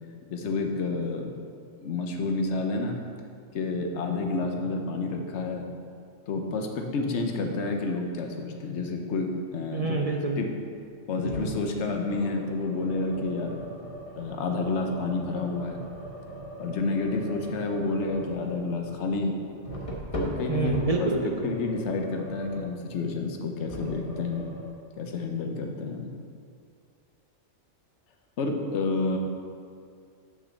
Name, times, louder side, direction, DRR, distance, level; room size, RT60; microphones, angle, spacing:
voice 1, 0.3-1.4 1.8-3.0 3.5-5.6 6.3-10.0 10.4-10.5 11.1-13.6 14.1-15.8 16.6-19.3 20.1-24.5 25.0-26.1 28.4-29.2, left 3 dB, 65° left, 3 dB, 1.1 m, -29 dB
voice 2, 9.7-10.4 20.5-21.5, right 3 dB, 45° right, 2 dB, 0.5 m, -27 dB
sound 1, 11.2-11.6 12.1-22.8 23.7-24.7, right 1 dB, 25° left, 1.1 m, -40 dB
6.8 x 6.0 x 6.4 m, 2.2 s
omnidirectional pair, 1.3 m